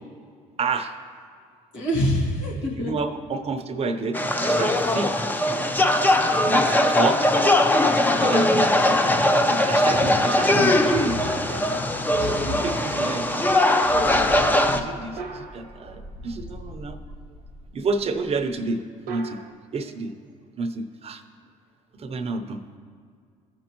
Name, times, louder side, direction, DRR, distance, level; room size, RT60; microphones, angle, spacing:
voice 1, 0.6-1.0 2.8-5.1 6.4-7.3 8.1-8.7 9.5-11.2 12.2-13.5 14.1-17.0 17.7-18.8 19.1-19.4 19.7-20.1 20.6-21.2 22.0-22.6, right 3 dB, 40° right, 8 dB, 0.7 m, -29 dB
voice 2, 1.7-2.9 8.5-9.0 9.5-10.9, equal, 90° left, -4 dB, 2.2 m, -28 dB
sound 1, 4.1-14.8, left 1 dB, 10° left, 0.6 m, -20 dB
sound 2, 4.6-5.6 9.9-11.5 15.2-16.3 19.1-19.5, right 5 dB, 65° right, 0.9 m, -40 dB
sound 3, 6.1-18.7, left 3 dB, 40° left, 2.0 m, -38 dB
15.5 x 5.2 x 3.0 m, 2.2 s
supercardioid pair, 90°, 16 cm